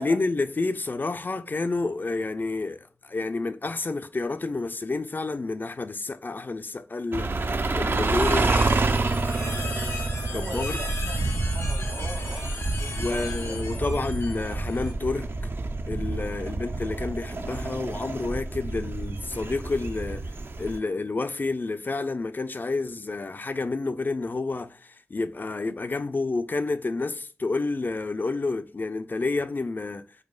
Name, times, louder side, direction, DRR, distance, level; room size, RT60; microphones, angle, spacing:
voice 1, 0.0-8.5 10.3-10.8 13.0-15.5 15.9-20.3 20.6-30.1, left 3 dB, 45° left, 0.3 m, -29 dB
sound 1, 7.1-20.8, right 3 dB, 55° right, 0.3 m, -28 dB
voice 2, 7.7-14.0 16.5-16.9, right 2 dB, 80° right, 0.7 m, -42 dB
sound 2, 8.1-14.9, left 3 dB, 90° left, 0.7 m, -37 dB
4.7 x 2.1 x 2.4 m
cardioid pair, 50°, 5 cm